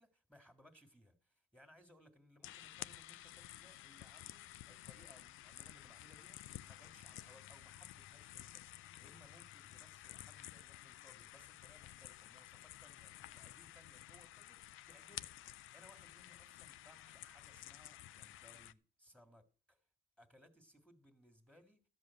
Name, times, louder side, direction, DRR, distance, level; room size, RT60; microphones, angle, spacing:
voice 1, 0.0-19.8 20.2-21.9, equal, 5° left, 2.0 m, -65 dB
sound 1, 2.4-18.7, left 14 dB, 80° left, 0.5 m, -53 dB
13.0 x 5.2 x 8.4 m
cardioid pair, 90°, 20 cm